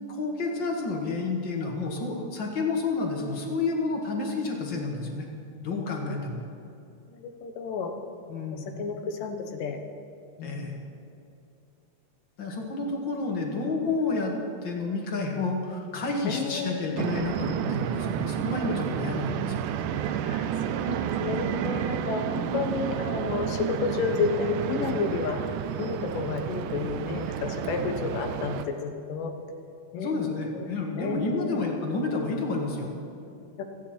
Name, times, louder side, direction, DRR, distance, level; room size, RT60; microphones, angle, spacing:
voice 1, 0.0-5.3 5.6-6.4 8.3-8.6 10.4-10.8 12.4-14.3 14.6-19.6 30.0-32.9, left 3 dB, 40° left, 0 dB, 2.2 m, -30 dB
voice 2, 7.1-7.9 8.5-9.8 10.4-10.8 12.5-12.9 16.2-17.0 20.3-25.4 25.8-29.3 29.9-30.3 30.5-30.7 31.0-31.6 33.6-33.7, left 5 dB, 85° left, 5 dB, 2.8 m, -31 dB
sound 1, 17.0-28.7, right 9 dB, 80° right, 2.1 m, -30 dB
29.0 x 10.0 x 4.4 m, 2.6 s
omnidirectional pair, 3.7 m